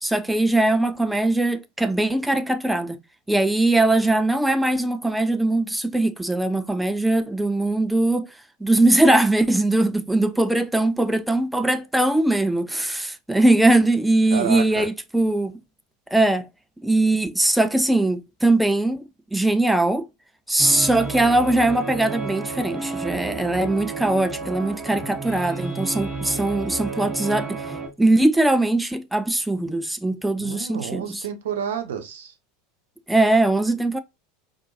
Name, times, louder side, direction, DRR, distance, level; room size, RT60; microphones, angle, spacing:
voice 1, 0.0-3.0 3.3-8.3 8.6-15.6 16.1-16.5 16.8-20.1 20.5-27.6 28.0-31.2 33.1-34.0, right 2 dB, 5° right, 0.4 m, -21 dB
voice 2, 14.3-14.9 30.4-32.3, right 8 dB, 65° right, 0.8 m, -29 dB
sound 1, 20.6-27.9, right 4 dB, 20° right, 1.2 m, -31 dB
4.4 x 2.6 x 2.7 m
figure-of-eight pair, 80°, 0 cm